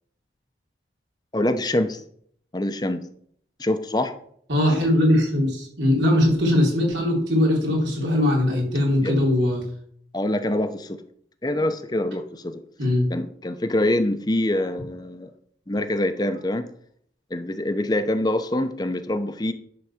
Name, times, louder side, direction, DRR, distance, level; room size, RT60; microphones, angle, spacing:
voice 1, 1.3-2.0 2.5-3.0 3.6-4.1 9.0-9.1 10.1-11.0 11.4-12.6 13.1-15.3 15.7-16.7 17.3-19.5, left 1 dB, 20° left, 9 dB, 0.7 m, -25 dB
voice 2, 4.5-9.6 12.8-13.0, left 1 dB, 90° right, -2 dB, 3.9 m, -20 dB
11.0 x 4.0 x 7.3 m, 0.64 s
head